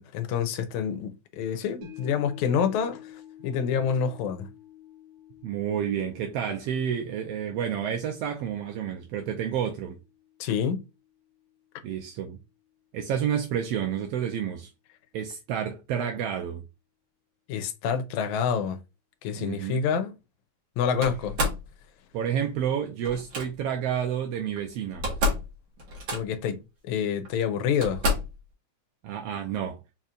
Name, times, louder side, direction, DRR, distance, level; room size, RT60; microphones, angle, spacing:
voice 1, 0.0-3.0 3.4-4.5 10.4-10.8 17.5-18.8 19.2-20.1 20.8-21.4 26.1-28.0, left 7 dB, 80° left, 2.0 m, -27 dB
sound 1, 1.8-12.2 12.6-12.7, left 9 dB, 60° right, 2.1 m, -51 dB
voice 2, 5.4-10.0 11.8-12.4 12.9-14.7 15.1-16.6 19.4-19.9 22.1-25.1 29.0-29.8, right 8 dB, 80° right, 1.4 m, -30 dB
Slam, 21.0-21.7 23.0-23.5 24.6-24.7 24.9-25.5 25.8-26.5 27.2-27.3 27.8-28.4, left 1 dB, 45° right, 1.9 m, -28 dB
5.0 x 4.4 x 2.4 m
omnidirectional pair, 3.4 m